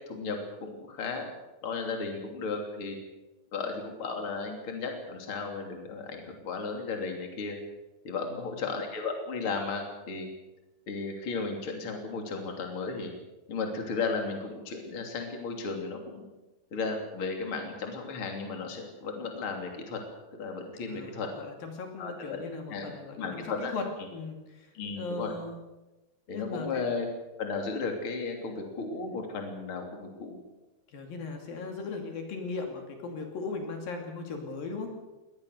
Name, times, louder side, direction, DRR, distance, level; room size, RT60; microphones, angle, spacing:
voice 1, 0.1-1.3 1.6-3.0 3.5-7.6 8.0-10.3 10.9-13.1 13.5-16.3 16.7-20.0 20.4-21.3 22.0-22.4 22.7-23.7 24.7-25.3 26.3-27.1 27.4-30.4, left 4 dB, 35° left, 3 dB, 3.6 m, -34 dB
voice 2, 8.3-8.6 20.9-23.8 24.1-24.7 25.0-25.6 26.3-26.8 30.9-34.9, left 4 dB, 70° left, 3 dB, 4.3 m, -38 dB
23.5 x 19.0 x 6.7 m, 1.1 s
omnidirectional pair, 4.4 m